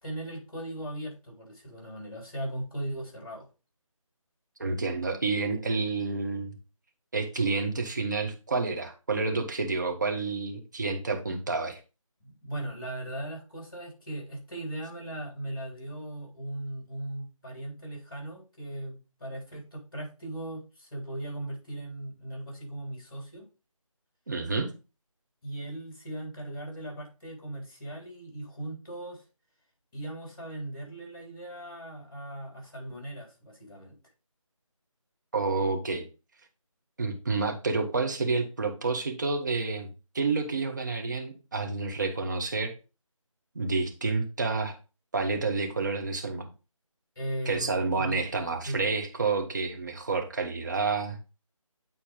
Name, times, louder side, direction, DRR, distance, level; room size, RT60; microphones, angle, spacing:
voice 1, 0.0-3.5 12.2-23.4 25.4-29.2 29.9-34.0 47.2-48.2 48.6-48.9, right 1 dB, 40° left, 0 dB, 3.7 m, -38 dB
voice 2, 4.6-6.6 7.1-11.8 24.3-24.7 35.3-36.1 37.0-39.9 40.1-42.7 43.5-44.7 45.1-46.5 47.5-51.2, right 3 dB, 35° right, 3 dB, 1.2 m, -29 dB
8.8 x 4.3 x 3.8 m, 0.31 s
figure-of-eight pair, 160°, 18 cm